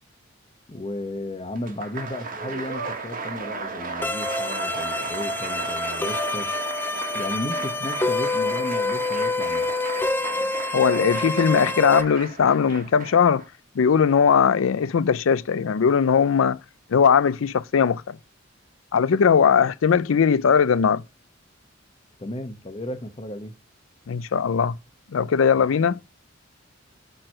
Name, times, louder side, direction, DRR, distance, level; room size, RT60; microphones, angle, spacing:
voice 1, 0.7-6.5 7.1-9.7 22.2-23.5, left 1 dB, 30° left, 0.9 m, -34 dB
Applause, 1.6-13.5, right 4 dB, 45° right, 1.4 m, -34 dB
sound 1, 4.0-12.0, left 2 dB, 10° left, 0.4 m, -27 dB
voice 2, 10.7-13.4 13.8-16.6 16.9-18.2 18.9-21.0 24.1-24.8 25.1-26.0, left 6 dB, 85° left, 0.4 m, -19 dB
5.9 x 4.5 x 6.3 m
head